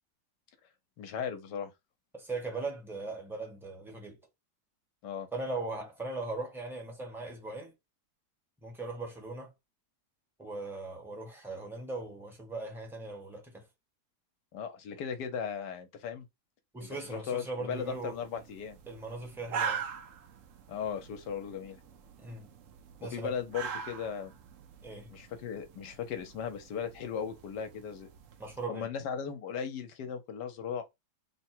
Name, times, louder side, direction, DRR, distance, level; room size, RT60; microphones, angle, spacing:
voice 1, 1.0-1.7 5.0-5.3 14.5-16.3 17.1-18.8 20.7-21.8 23.0-24.3 25.1-28.1 28.7-30.8, left 7 dB, 85° left, 1.4 m, -37 dB
voice 2, 2.1-4.2 5.3-7.7 8.6-9.5 10.4-13.6 16.7-18.2 18.9-19.8 22.2-22.5 23.0-23.3 24.8-25.1 28.4-28.9, right 3 dB, ahead, 1.0 m, -39 dB
sound 1, 17.7-28.7, right 6 dB, 65° right, 0.8 m, -43 dB
3.5 x 2.2 x 4.3 m
omnidirectional pair, 1.8 m